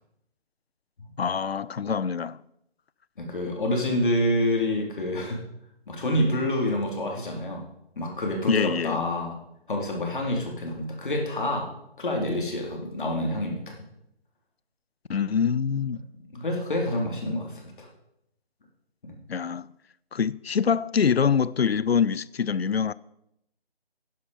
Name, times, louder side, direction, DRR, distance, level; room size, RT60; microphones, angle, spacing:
voice 1, 1.2-2.4 8.5-9.0 15.1-16.0 19.3-19.7 20.1-22.9, left 6 dB, 75° left, 0.6 m, -25 dB
voice 2, 3.2-5.4 5.9-7.7 8.0-9.4 9.7-11.7 12.0-13.7 16.3-17.9 19.0-19.2, left 1 dB, 55° left, 3.6 m, -27 dB
11.0 x 10.5 x 5.0 m
figure-of-eight pair, 155°, 31 cm